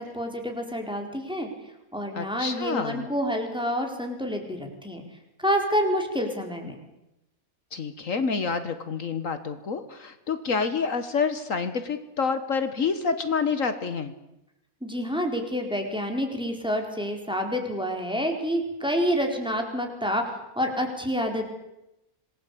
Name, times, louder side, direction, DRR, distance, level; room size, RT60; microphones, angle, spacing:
voice 1, 0.0-1.5 1.9-5.0 5.4-6.8 14.8-21.5, equal, 5° right, 2 dB, 4.4 m, -28 dB
voice 2, 2.1-3.1 7.7-14.1, left 5 dB, 65° left, 10 dB, 1.8 m, -28 dB
27.0 x 20.0 x 8.5 m, 0.91 s
omnidirectional pair, 1.5 m